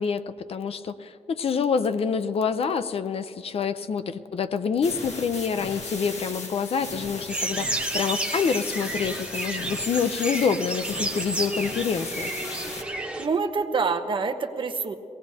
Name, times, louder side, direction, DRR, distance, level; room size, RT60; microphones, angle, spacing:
voice 1, 0.0-12.3, left 6 dB, 60° left, 11 dB, 0.5 m, -27 dB
sound 1, 4.8-12.8, left 2 dB, 80° left, 1.6 m, -37 dB
sound 2, 7.3-13.3, right 2 dB, 10° right, 0.9 m, -31 dB
voice 2, 13.2-15.0, right 4 dB, 45° right, 6 dB, 0.8 m, -26 dB
23.0 x 17.5 x 2.7 m, 2.5 s
wide cardioid pair, 150°, 11 cm